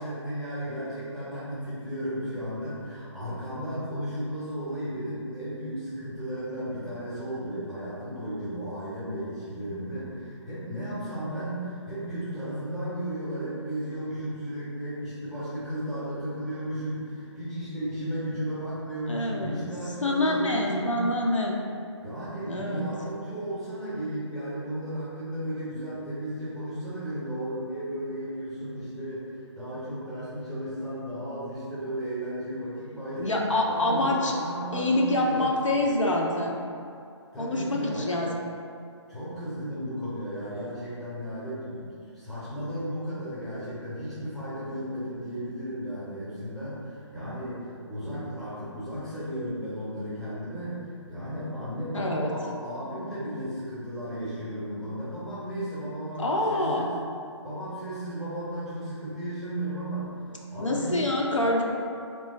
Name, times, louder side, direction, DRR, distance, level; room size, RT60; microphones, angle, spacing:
voice 1, 0.0-21.0 22.0-33.3 33.6-36.0 37.3-38.1 39.1-41.9 42.1-56.9 57.4-61.0, right 1 dB, ahead, -13 dB, 0.6 m, -34 dB
voice 2, 19.1-19.6 20.0-21.6 22.5-22.9 33.2-34.4 34.7-36.6 37.4-38.3 51.9-52.3 56.2-56.8 60.6-61.6, left 1 dB, 80° left, -1 dB, 0.6 m, -26 dB
3.0 x 2.3 x 4.1 m, 2.4 s
figure-of-eight pair, 145°, 16 cm